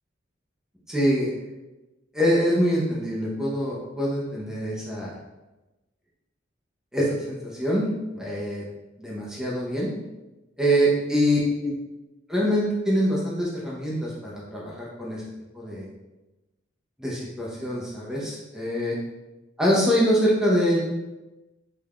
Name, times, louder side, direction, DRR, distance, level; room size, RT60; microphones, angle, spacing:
voice 1, 0.9-1.3 2.1-5.1 6.9-7.9 8.1-8.6 9.0-9.9 10.6-11.7 12.3-15.2 15.5-15.8 17.0-19.0 19.6-20.8, equal, 5° right, -6 dB, 0.5 m, -24 dB
3.5 x 3.3 x 2.3 m, 1.1 s
head